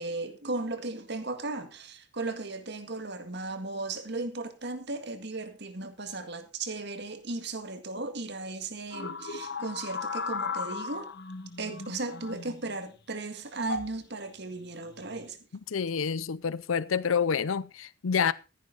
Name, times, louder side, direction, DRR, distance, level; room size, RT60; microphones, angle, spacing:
voice 1, 0.0-11.1 11.6-15.5, right 2 dB, 55° right, 1.8 m, -36 dB
sound 1, 8.9-12.7 13.6-14.0 14.9-15.3, left 4 dB, 55° left, 1.1 m, -36 dB
voice 2, 15.7-18.3, left 6 dB, 80° left, 0.6 m, -28 dB
14.5 x 10.5 x 3.9 m
head